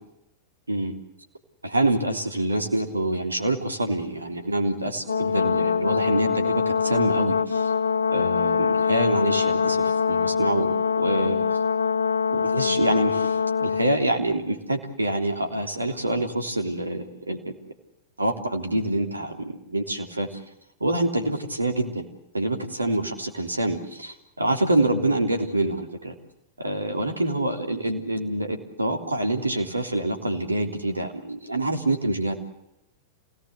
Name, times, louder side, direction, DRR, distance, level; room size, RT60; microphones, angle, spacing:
voice 1, 1.6-7.7 8.1-11.4 12.3-17.5 18.2-20.4 20.8-22.1 22.3-26.1 26.6-32.3, right 1 dB, 90° right, 5 dB, 3.4 m, -26 dB
Brass instrument, 5.1-14.0, left 6 dB, 80° left, 1.2 m, -24 dB
27.5 x 18.0 x 8.2 m, 0.85 s
figure-of-eight pair, 95°, 0 cm